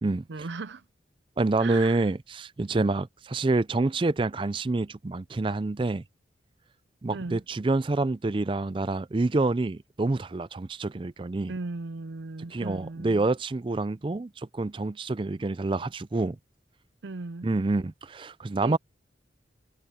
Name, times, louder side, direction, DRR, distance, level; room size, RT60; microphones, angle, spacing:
voice 1, 0.3-0.8 1.6-2.1 7.1-7.4 11.5-13.3 17.0-17.5 18.6-18.8, right 3 dB, 75° right, 0.6 m, -37 dB
voice 2, 1.4-6.0 7.0-11.5 12.5-16.4 17.4-18.8, right 2 dB, 25° right, 0.4 m, -27 dB
head